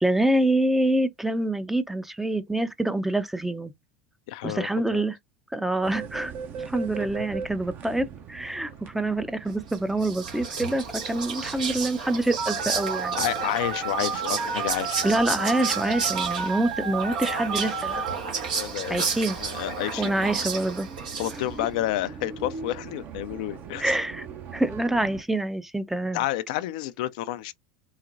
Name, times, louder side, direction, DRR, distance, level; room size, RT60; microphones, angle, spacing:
voice 1, 0.0-3.7 4.4-5.2 5.5-6.3 6.6-13.2 15.0-18.0 18.9-19.4 20.0-20.9 23.8-24.3 24.5-26.2, right 1 dB, 5° right, 0.5 m, -26 dB
voice 2, 4.3-5.0 13.2-15.0 18.5-20.3 21.2-23.9 26.1-27.5, left 14 dB, 65° left, 0.3 m, -30 dB
sound 1, 5.8-25.2, right 6 dB, 45° right, 0.8 m, -41 dB
Whispering, 9.7-21.7, right 5 dB, 75° right, 1.3 m, -32 dB
Telephone, 12.4-18.1, right 4 dB, 60° right, 1.4 m, -31 dB
4.0 x 2.1 x 2.6 m
hypercardioid pair, 80°, 4 cm